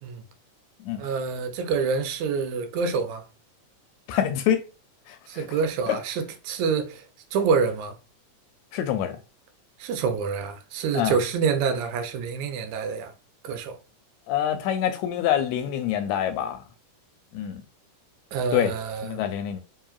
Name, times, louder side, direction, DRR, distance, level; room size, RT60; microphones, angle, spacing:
voice 1, 1.0-3.3 5.3-7.0 7.3-8.0 9.8-13.1 13.4-13.8 18.3-19.2, right 5 dB, 80° right, 1.9 m, -27 dB
voice 2, 4.1-4.6 5.1-5.5 5.9-6.0 8.7-9.2 10.9-11.2 14.3-16.6 17.3-17.6 18.5-18.7 19.0-19.6, left 10 dB, 80° left, 1.8 m, -25 dB
4.6 x 3.1 x 2.3 m
omnidirectional pair, 3.3 m